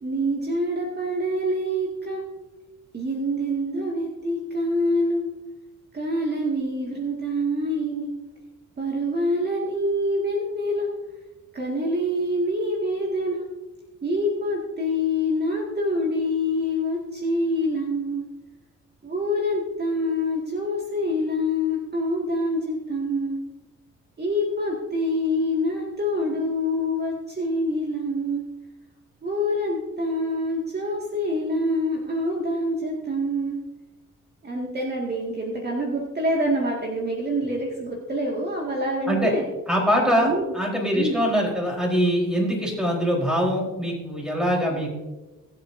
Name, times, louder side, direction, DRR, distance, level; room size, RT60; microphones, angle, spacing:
voice 1, 0.0-2.2 2.9-5.3 5.9-8.1 8.8-10.9 11.5-13.4 14.0-18.2 19.0-23.4 24.2-28.4 29.2-33.6 34.4-39.5 40.2-40.5 40.9-41.2, equal, 35° right, -2 dB, 2.1 m, -26 dB
voice 2, 39.7-44.9, equal, ahead, -2 dB, 4.2 m, -23 dB
21.0 x 8.0 x 2.7 m, 1.1 s
cardioid pair, 90°, 30 cm